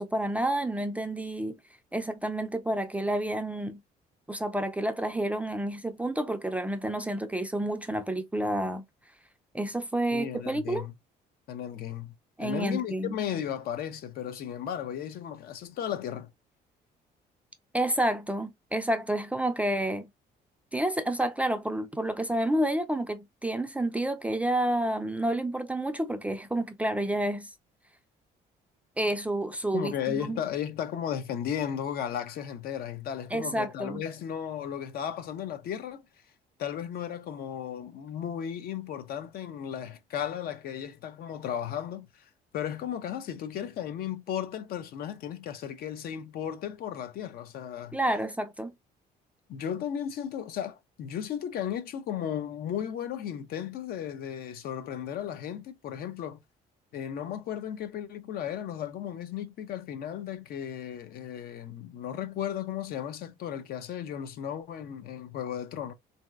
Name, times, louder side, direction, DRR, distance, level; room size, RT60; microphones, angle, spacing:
voice 1, 0.0-1.6 1.9-3.8 4.3-8.8 9.5-10.8 12.4-13.1 17.7-20.1 20.7-27.5 29.0-30.4 33.3-34.0 47.9-48.7, right 1 dB, 10° right, 0.3 m, -29 dB
voice 2, 10.1-10.9 11.5-12.1 12.4-16.3 29.7-36.0 36.6-48.0 49.5-56.4 56.9-65.9, left 9 dB, 65° left, 0.6 m, -35 dB
3.1 x 2.7 x 2.3 m
cardioid pair, 110°, 17 cm